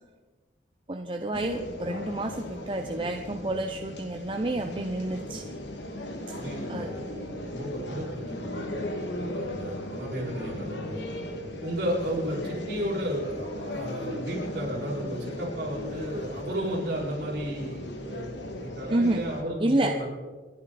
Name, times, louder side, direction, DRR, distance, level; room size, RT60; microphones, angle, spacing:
voice 1, 0.9-5.4 6.7-6.9 18.9-19.2 19.6-20.0, right 1 dB, 25° right, 4 dB, 0.7 m, -29 dB
sound 1, 1.3-19.4, left 1 dB, 75° left, 2.3 m, -37 dB
voice 2, 6.3-8.8 9.1-11.1 11.6-18.3 18.5-20.1, equal, 60° right, -4 dB, 6.3 m, -33 dB
29.0 x 11.0 x 4.3 m, 1.4 s
head